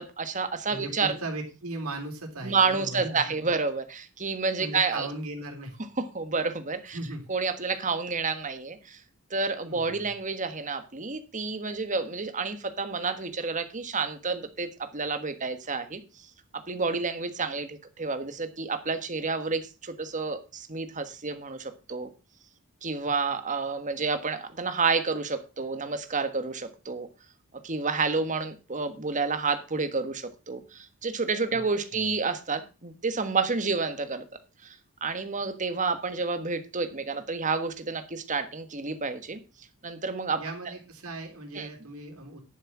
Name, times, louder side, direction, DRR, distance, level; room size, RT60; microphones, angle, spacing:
voice 1, 0.0-1.2 2.4-5.1 6.0-7.0 7.3-9.0 9.3-16.0 16.7-22.1 22.8-27.1 27.6-34.2 34.6-39.4 39.8-40.4 41.5-41.7, right 4 dB, 35° right, 9 dB, 1.5 m, -29 dB
voice 2, 0.7-3.5 4.6-5.8 6.9-7.2 9.6-10.2 31.5-31.6 31.9-32.1 40.4-42.4, right 2 dB, 75° right, 2 dB, 3.6 m, -38 dB
11.0 x 6.7 x 6.1 m, 0.32 s
head